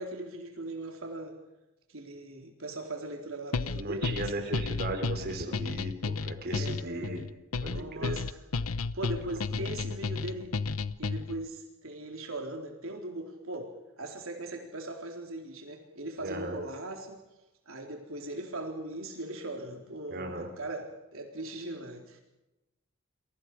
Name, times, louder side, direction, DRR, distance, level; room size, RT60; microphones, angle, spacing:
voice 1, 0.0-1.4 1.9-4.8 6.5-7.2 7.6-8.4 8.9-10.6 11.0-17.2 17.7-22.2, right 1 dB, 65° right, 2 dB, 4.0 m, -39 dB
sound 1, 3.5-11.4, left 4 dB, 75° left, 0.9 m, -33 dB
voice 2, 3.7-7.2 7.6-8.2 16.2-16.6 20.1-20.5, right 2 dB, 45° right, 4 dB, 4.2 m, -36 dB
29.5 x 23.5 x 5.0 m, 0.98 s
head